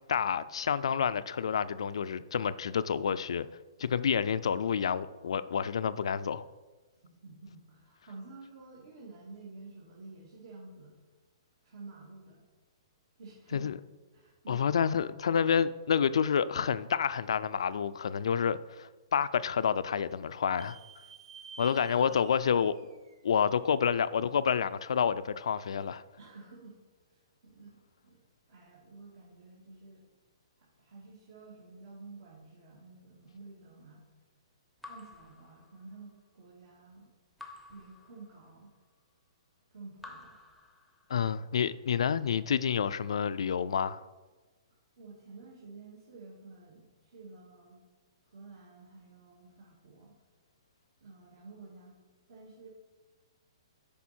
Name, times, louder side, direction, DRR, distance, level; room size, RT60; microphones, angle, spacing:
voice 1, 0.1-3.5 3.8-6.5 13.5-13.7 14.5-20.8 21.6-22.7 23.2-26.0 41.1-44.0, left 7 dB, 75° left, 0.4 m, -29 dB
voice 2, 7.0-11.0 11.6-12.4 13.2-13.8 14.1-14.7 21.6-22.2 26.2-26.8 27.1-28.2 28.5-30.0 30.6-34.0 34.9-37.1 37.7-38.7 39.7-40.4 41.1-41.3 45.0-47.8 48.2-50.1 51.0-51.9 52.3-52.7, right 3 dB, 60° right, 2.2 m, -51 dB
sound 1, 20.6-24.1, right 4 dB, 80° right, 1.2 m, -51 dB
Raindrop / Drip, 34.8-36.2 37.4-38.8 40.0-41.4, left 3 dB, ahead, 0.7 m, -52 dB
8.4 x 5.5 x 4.4 m
hypercardioid pair, 150°, 3 cm